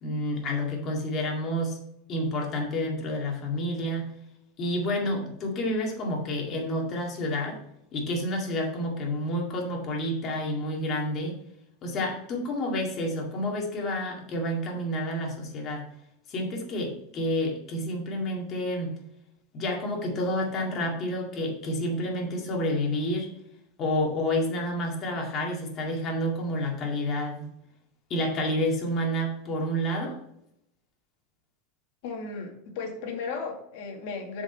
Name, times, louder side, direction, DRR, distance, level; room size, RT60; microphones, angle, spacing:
voice 1, 0.0-1.8 2.1-4.1 4.6-7.6 7.9-11.4 11.8-15.9 16.3-18.9 19.5-23.3 23.8-27.5 28.1-30.2, left 1 dB, 30° left, -1 dB, 2.1 m, -29 dB
voice 2, 32.0-34.4, left 4 dB, 60° left, 2 dB, 1.9 m, -35 dB
7.6 x 5.0 x 4.5 m, 0.78 s
supercardioid pair, 155°, 0 cm